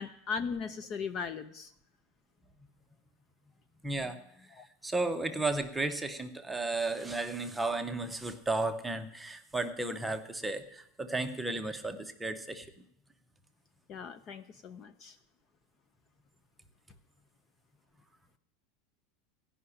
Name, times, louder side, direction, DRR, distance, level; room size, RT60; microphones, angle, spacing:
voice 1, 0.0-1.7 4.6-4.7 13.9-15.1, left 6 dB, 30° left, 11 dB, 0.5 m, -38 dB
voice 2, 3.8-4.2 4.8-12.7, right 2 dB, 5° right, 7 dB, 0.7 m, -34 dB
16.0 x 5.7 x 9.8 m, 0.75 s
supercardioid pair, 175°, 0 cm